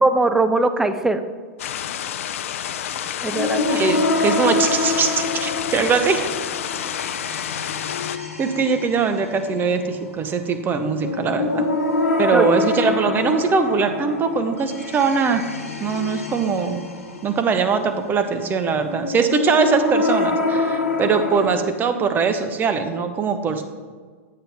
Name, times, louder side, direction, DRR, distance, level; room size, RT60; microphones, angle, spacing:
voice 1, 0.0-1.2 3.2-4.0 12.3-12.4, right 2 dB, 5° right, 9 dB, 0.6 m, -20 dB
sound 1, 1.6-8.2, left 10 dB, 70° left, 0.4 m, -29 dB
sound 2, 3.3-21.5, left 2 dB, 90° left, 1.2 m, -26 dB
voice 2, 3.7-6.3 8.4-11.6 12.2-15.4 15.8-16.8 17.2-23.6, right 5 dB, 25° right, 8 dB, 0.9 m, -21 dB
8.5 x 7.7 x 3.5 m, 1.5 s
hypercardioid pair, 100°, 7 cm